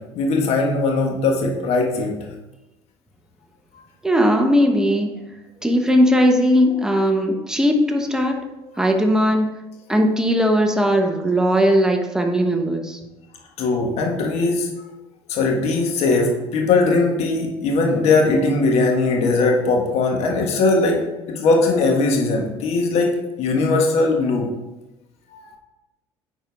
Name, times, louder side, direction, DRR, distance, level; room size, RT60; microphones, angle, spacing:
voice 1, 0.1-2.1 13.6-14.7 15.3-24.5 25.3-25.6, left 3 dB, 65° left, 0 dB, 1.6 m, -20 dB
voice 2, 4.0-5.1 5.6-8.4 8.8-9.5 9.9-13.0, equal, 5° right, 3 dB, 1.0 m, -18 dB
9.2 x 4.5 x 3.5 m, 1.0 s
supercardioid pair, 95°, 12 cm